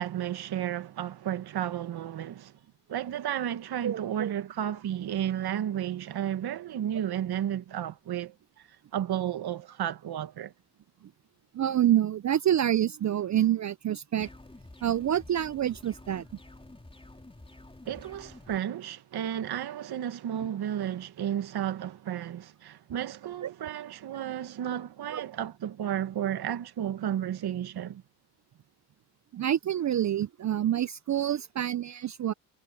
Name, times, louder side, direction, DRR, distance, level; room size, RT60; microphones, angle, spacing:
voice 1, 0.0-2.5 2.9-10.5 17.8-28.0, right 10 dB, 55° right, 1.6 m, -33 dB
voice 2, 3.8-4.3 11.5-14.3 14.8-16.3 23.4-23.5 25.1-25.2 29.3-32.3, right 11 dB, 40° right, 0.6 m, -27 dB
sound 1, 14.2-18.6, left 2 dB, 10° left, 4.1 m, -50 dB
supercardioid pair, 65°, 46 cm